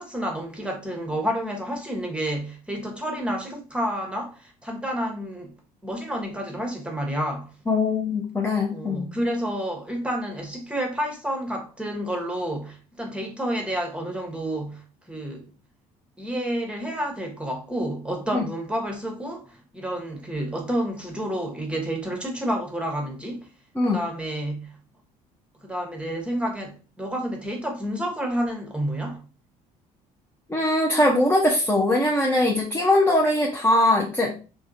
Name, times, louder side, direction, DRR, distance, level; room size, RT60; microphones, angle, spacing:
voice 1, 0.0-5.5 5.8-7.5 8.7-15.5 16.2-23.5 23.8-24.8 25.6-29.3, equal, 5° right, 1.0 m, -30 dB
voice 2, 7.7-9.1 18.3-18.4 23.8-24.0 30.5-34.4, left 1 dB, 10° left, 0.7 m, -21 dB
3.5 x 2.2 x 2.6 m
hypercardioid pair, 60°, 19 cm